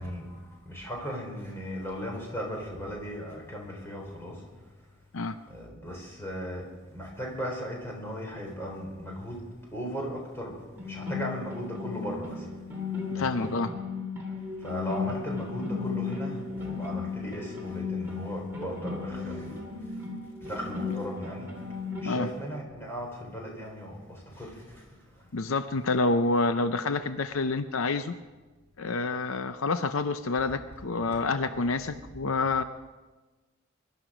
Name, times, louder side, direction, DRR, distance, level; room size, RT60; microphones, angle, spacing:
voice 1, 0.0-4.4 5.5-9.4 9.7-12.5 13.1-13.5 14.6-19.6 20.4-21.5 22.0-25.3, equal, 10° left, -1 dB, 4.0 m, -37 dB
sound 1, 10.8-22.2, left 4 dB, 10° right, 3.0 m, -35 dB
voice 2, 13.1-13.7 22.0-22.3 25.3-28.1 28.8-32.6, left 3 dB, 75° left, 10 dB, 0.6 m, -28 dB
22.5 x 12.5 x 5.1 m, 1.2 s
head